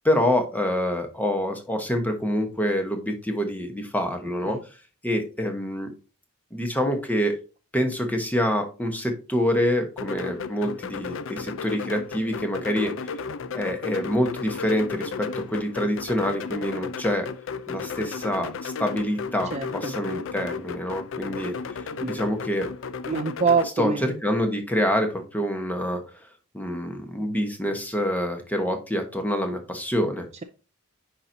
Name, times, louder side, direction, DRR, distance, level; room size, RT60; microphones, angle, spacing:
voice 1, 0.0-4.6 5.0-5.9 6.5-7.3 7.7-13.2 13.5-17.3 17.7-22.7 23.8-26.0 26.5-30.3, equal, 5° left, 5 dB, 1.1 m, -26 dB
sound 1, 10.0-23.7, left 5 dB, 60° left, 0.4 m, -34 dB
voice 2, 19.5-19.9 22.0-22.2 23.1-24.1, right 5 dB, 30° right, 7 dB, 0.4 m, -25 dB
9.7 x 4.4 x 2.7 m, 0.34 s
head